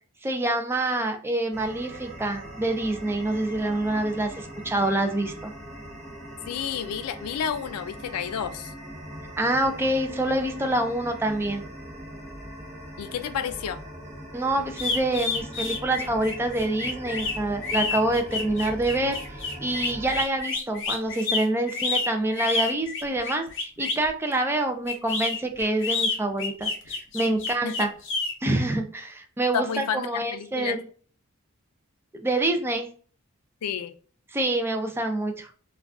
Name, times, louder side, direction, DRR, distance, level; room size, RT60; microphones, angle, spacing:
voice 1, 0.2-5.5 9.4-11.6 14.3-27.9 28.4-30.8 32.1-32.9 34.3-35.6, right 2 dB, 10° right, 0.3 m, -26 dB
sound 1, 1.5-20.2, equal, 30° right, 0.8 m, -41 dB
voice 2, 6.5-8.7 13.0-13.8 27.6-27.9 29.5-30.8 33.6-33.9, left 8 dB, 90° left, 0.4 m, -30 dB
sound 2, 14.7-24.1 24.9-28.3, left 4 dB, 60° left, 0.7 m, -29 dB
2.4 x 2.3 x 3.4 m
head